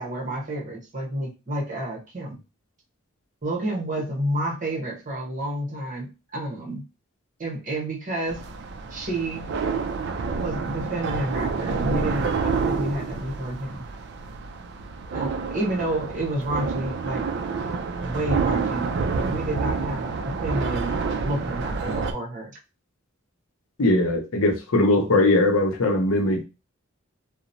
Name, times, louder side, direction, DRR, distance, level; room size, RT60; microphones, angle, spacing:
voice 1, 0.0-2.4 3.4-6.8 7.4-8.4 8.9-9.5 10.4-13.8 15.1-17.2 18.0-18.9 19.2-22.6, right 1 dB, 40° right, 0.9 m, -30 dB
sound 1, 8.3-22.1, right 4 dB, 55° right, 0.3 m, -28 dB
voice 2, 23.8-26.4, left 2 dB, 85° left, 0.6 m, -20 dB
2.8 x 2.0 x 2.6 m
head